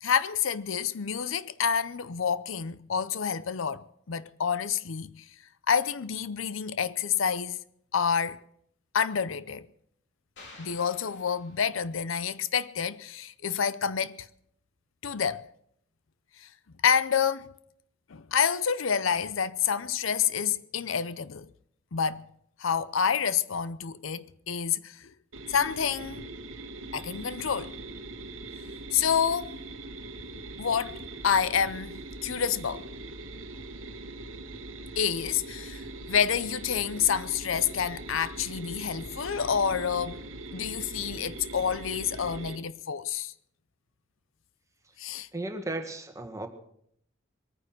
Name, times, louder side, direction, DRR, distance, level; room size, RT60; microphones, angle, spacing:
voice 1, 0.0-5.2 5.7-7.6 7.9-8.4 8.9-9.7 10.6-14.3 15.0-15.4 16.4-16.5 16.8-17.5 18.1-21.5 21.9-22.2 22.6-25.1 25.5-26.3 26.9-27.7 28.9-29.6 30.6-31.0 31.2-32.9 35.0-40.2 40.5-43.3 45.0-45.3, left 7 dB, 80° left, 0.6 m, -28 dB
sound 1, 10.4-12.1, left 2 dB, 60° left, 3.9 m, -52 dB
sound 2, 25.3-42.6, right 2 dB, 80° right, 1.3 m, -41 dB
voice 2, 45.3-46.5, right 2 dB, 15° right, 1.7 m, -35 dB
22.0 x 9.7 x 6.3 m
head